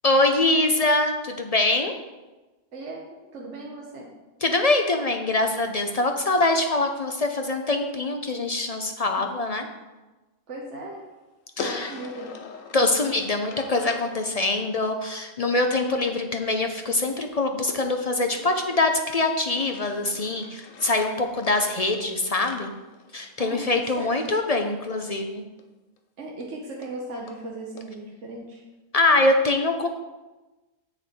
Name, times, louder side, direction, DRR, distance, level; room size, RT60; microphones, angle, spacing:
voice 1, 0.0-1.9 4.4-9.7 11.6-11.9 12.7-22.7 23.1-25.4 28.9-29.9, left 2 dB, 45° left, 5 dB, 0.5 m, -24 dB
voice 2, 2.7-4.1 9.2-9.3 10.5-11.1 11.6-12.4 23.4-24.2 26.2-28.6, right 2 dB, 65° right, -2 dB, 1.4 m, -37 dB
sound 1, 11.6-14.2 17.7-19.1 19.6-23.7 25.6-25.7 26.0-26.1 26.4-26.5 26.8-26.9 27.3-27.4 27.8-27.9, left 5 dB, 85° left, 1.2 m, -41 dB
7.9 x 6.8 x 4.3 m, 1.1 s
omnidirectional pair, 1.3 m